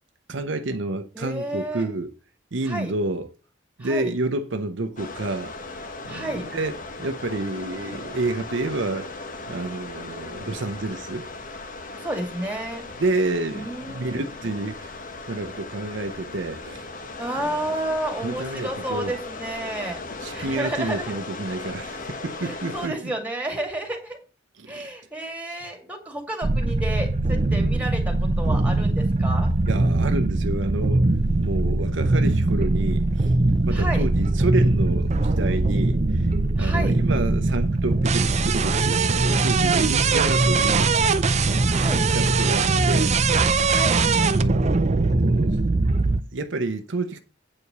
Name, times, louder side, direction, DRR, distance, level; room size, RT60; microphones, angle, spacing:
voice 1, 0.3-2.1 2.5-3.3 3.8-5.5 6.0-9.1 9.5-11.3 13.0-14.9 15.3-16.8 17.4-17.6 18.2-19.1 20.2-23.1 24.6-24.9 29.7-31.0 31.4-33.3 33.6-36.3 36.6-40.9 41.9-43.2 44.1-45.6 46.3-47.2, right 2 dB, 70° right, 0.7 m, -29 dB
voice 2, 1.1-1.9 2.6-2.9 3.8-4.1 6.1-6.5 12.0-12.9 13.5-14.2 17.2-20.0 20.3-21.1 22.4-24.2 24.7-29.5 33.7-34.1 36.6-37.0 41.7-42.0 43.6-44.0, right 1 dB, 10° right, 2.2 m, -31 dB
sound 1, 5.0-22.9, left 3 dB, 45° left, 1.0 m, -37 dB
sound 2, 26.4-46.2, right 3 dB, 35° right, 0.6 m, -21 dB
8.5 x 4.8 x 6.7 m
head